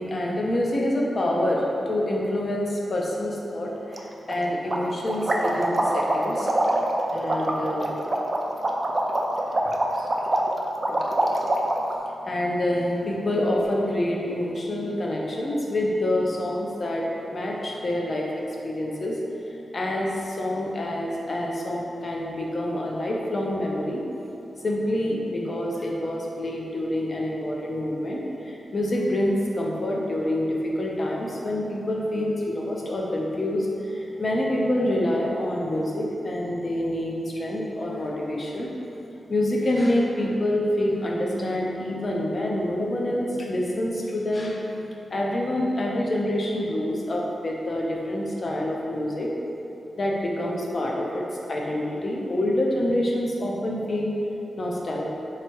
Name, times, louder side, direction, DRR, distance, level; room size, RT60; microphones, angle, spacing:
voice 1, 0.0-6.5 7.1-7.9 9.9-10.4 10.9-11.4 12.2-18.3 18.6-19.2 19.4-24.0 24.6-38.7 39.3-44.6 45.1-49.3 50.0-54.1 54.6-55.0, left 1 dB, 35° left, -2 dB, 0.6 m, -27 dB
sound 1, 3.9-4.0 4.3-4.4 4.7-12.0, right 1 dB, 25° right, 0.3 m, -24 dB
sound 2, 41.3-45.9, left 1 dB, 20° left, 1.3 m, -42 dB
3.5 x 3.3 x 4.3 m, 2.8 s
wide cardioid pair, 165°, 0 cm